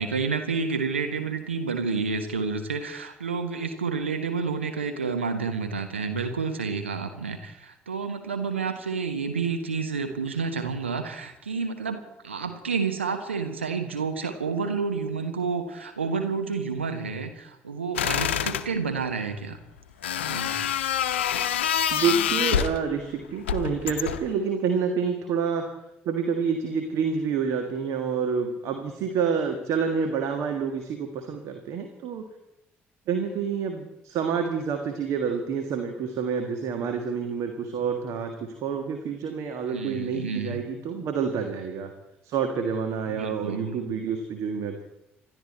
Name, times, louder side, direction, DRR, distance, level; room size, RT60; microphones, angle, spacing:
voice 1, 0.0-19.6 20.3-20.7 39.7-40.6 43.1-43.8, right 5 dB, 80° right, 6 dB, 1.1 m, -30 dB
sound 1, 18.0-18.7 20.0-22.8 23.5-24.3, left 9 dB, 75° left, 0.7 m, -26 dB
voice 2, 21.9-25.7 26.0-32.3 33.1-38.3 38.6-41.9 42.2-44.9, right 6 dB, 55° right, 5 dB, 1.8 m, -28 dB
27.0 x 12.0 x 4.3 m, 0.86 s
figure-of-eight pair, 45°, 6 cm